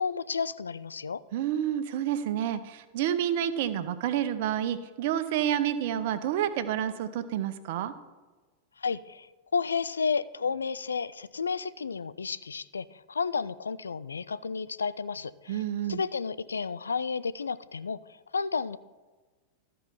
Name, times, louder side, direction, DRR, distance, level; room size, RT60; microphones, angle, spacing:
voice 1, 0.0-1.2 8.8-15.6 15.9-18.8, left 5 dB, 75° left, 16 dB, 0.3 m, -32 dB
voice 2, 1.3-7.9 15.5-16.0, right 10 dB, 50° right, 12 dB, 0.6 m, -29 dB
13.5 x 4.6 x 5.6 m, 1.3 s
figure-of-eight pair, 90°, 0 cm